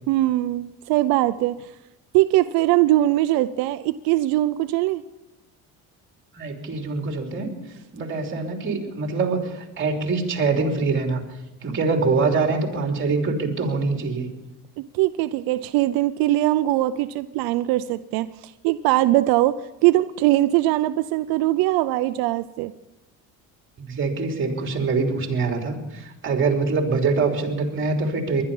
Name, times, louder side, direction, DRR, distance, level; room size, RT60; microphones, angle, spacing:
voice 1, 0.1-1.7 2.1-5.0 14.8-22.7, right 16 dB, 90° right, 12 dB, 0.6 m, -21 dB
voice 2, 6.3-7.5 7.9-11.2 11.6-14.3 23.8-28.4, right 4 dB, 35° right, 3 dB, 3.3 m, -24 dB
21.0 x 11.5 x 5.5 m, 0.98 s
cardioid pair, 115°, 35 cm